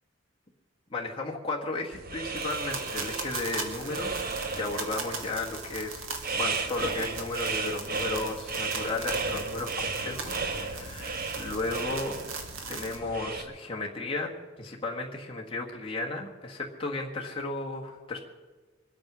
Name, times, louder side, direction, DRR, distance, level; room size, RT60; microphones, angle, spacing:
voice 1, 0.9-6.0 6.3-12.2 12.7-14.3 14.6-18.2, left 2 dB, 25° left, -2 dB, 1.5 m, -34 dB
sound 1, 1.9-13.4, right 4 dB, 45° right, 1.3 m, -34 dB
sound 2, 2.3-13.0, right 4 dB, 85° right, 2.5 m, -40 dB
24.0 x 9.0 x 6.1 m, 1.3 s
head